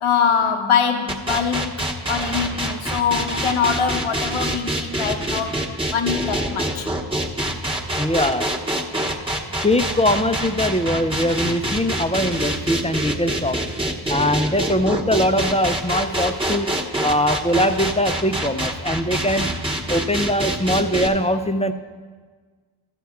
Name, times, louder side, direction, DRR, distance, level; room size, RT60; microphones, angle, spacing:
voice 1, 0.0-1.7 2.1-5.6 5.9-6.9, left 6 dB, 85° left, 5 dB, 0.8 m, -23 dB
sound 1, 1.1-21.1, right 1 dB, 10° right, 1.0 m, -26 dB
voice 2, 8.0-8.5 9.6-13.6 14.1-16.7 17.0-19.5 19.9-21.7, left 1 dB, 15° left, 9 dB, 0.4 m, -21 dB
14.0 x 7.4 x 3.5 m, 1.5 s
cardioid pair, 50°, 49 cm